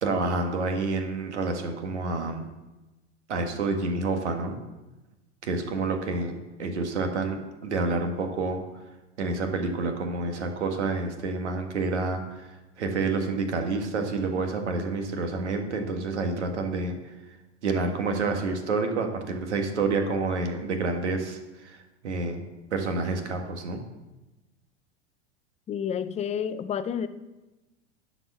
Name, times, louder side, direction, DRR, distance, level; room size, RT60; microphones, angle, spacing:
voice 1, 0.0-2.5 3.3-4.6 5.4-8.6 9.2-17.1 17.6-21.8 22.0-22.4 22.7-23.8, right 3 dB, 70° right, 5 dB, 1.8 m, -28 dB
voice 2, 25.7-27.1, left 8 dB, 20° left, 12 dB, 0.6 m, -30 dB
11.5 x 5.0 x 7.4 m, 1.1 s
figure-of-eight pair, 90°, 35 cm